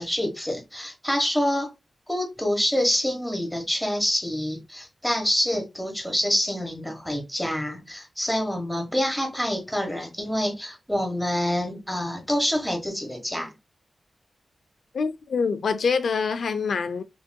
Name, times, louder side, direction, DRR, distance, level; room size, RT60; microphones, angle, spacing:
voice 1, 0.0-1.7 2.1-13.5, equal, ahead, 1.2 m, -26 dB
voice 2, 14.9-17.0, left 5 dB, 90° left, 0.5 m, -25 dB
6.1 x 2.8 x 2.2 m
wide cardioid pair, 150°, 0 cm